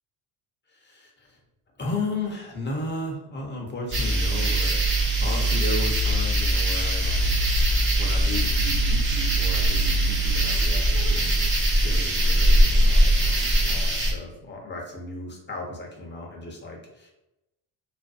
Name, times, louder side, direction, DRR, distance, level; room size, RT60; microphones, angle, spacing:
voice 1, 0.7-1.4 1.8-7.4 8.0-11.5 11.8-17.2, left 2 dB, 25° left, 0 dB, 0.7 m, -35 dB
sound 1, 3.9-14.1, right 1 dB, 25° right, 0.6 m, -21 dB
2.5 x 2.2 x 2.3 m, 0.91 s
supercardioid pair, 70°, 48 cm